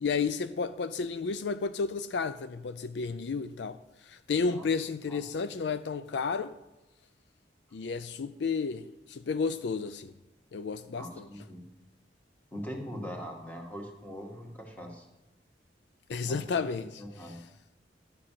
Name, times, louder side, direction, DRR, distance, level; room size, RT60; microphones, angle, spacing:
voice 1, 0.0-6.5 7.7-10.1 10.5-11.3 16.1-17.3, left 5 dB, 70° left, 0.4 m, -32 dB
voice 2, 11.0-11.6 12.5-15.1 16.2-16.7 17.0-17.4, equal, 10° left, 1.9 m, -41 dB
11.0 x 6.5 x 7.5 m
head